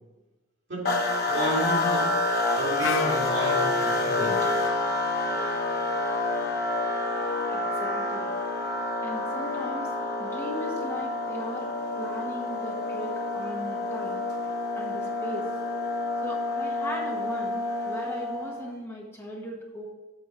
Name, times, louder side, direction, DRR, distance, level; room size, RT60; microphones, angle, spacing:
voice 1, 0.7-2.2 2.5-4.5, right 1 dB, 70° right, -3 dB, 2.3 m, -33 dB
sound 1, 0.9-18.7, left 2 dB, 50° left, 1.0 m, -28 dB
Wind instrument woodwind instrument, 2.8-6.7, left 4 dB, 70° left, 0.6 m, -37 dB
voice 2, 7.5-8.3 9.0-9.9 10.2-11.7 12.0-14.2 14.7-15.5 16.2-19.9, equal, 15° left, -2 dB, 1.0 m, -38 dB
7.4 x 4.2 x 6.5 m, 1.2 s
head